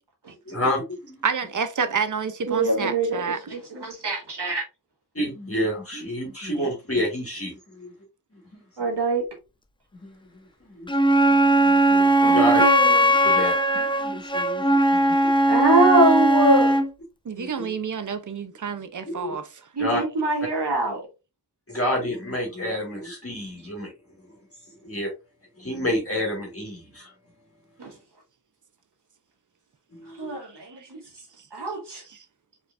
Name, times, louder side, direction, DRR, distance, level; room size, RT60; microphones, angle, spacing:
voice 1, 0.5-1.2 5.1-7.9 8.3-8.6 9.9-10.9 11.3-12.6 13.2-15.5 17.4-17.7 19.0-19.4 19.8-20.0 21.7-23.9 24.2-24.3 24.8-25.1 25.6-27.1 29.9-30.4 31.6-31.7, left 1 dB, 35° left, 1.9 m, -30 dB
voice 2, 1.2-3.4 17.2-19.5 30.8-30.9 32.1-32.2, right 6 dB, 50° right, 0.7 m, -29 dB
voice 3, 2.5-4.6 8.8-9.2 12.2-13.1 15.5-16.8 19.8-21.0 27.8-27.9 30.2-31.0 31.5-32.0, right 2 dB, 80° right, 2.2 m, -23 dB
Wind instrument woodwind instrument, 10.9-16.9, right 1 dB, 15° left, 0.5 m, -19 dB
4.8 x 3.9 x 2.5 m
wide cardioid pair, 80°, 40 cm